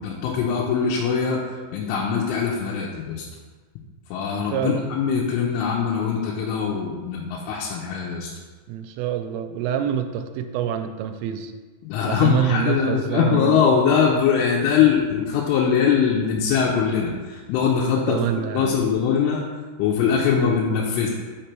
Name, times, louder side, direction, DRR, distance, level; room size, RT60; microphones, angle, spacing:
voice 1, 0.0-1.4 1.7-3.2 4.1-8.3 11.8-18.2 18.5-19.4 19.8-21.1, left 7 dB, 85° left, -4 dB, 3.2 m, -22 dB
voice 2, 4.5-4.9 8.7-11.5 12.1-13.6 18.1-18.8, right 10 dB, 85° right, 7 dB, 3.1 m, -26 dB
6.6 x 5.2 x 4.4 m, 1.4 s
omnidirectional pair, 5.7 m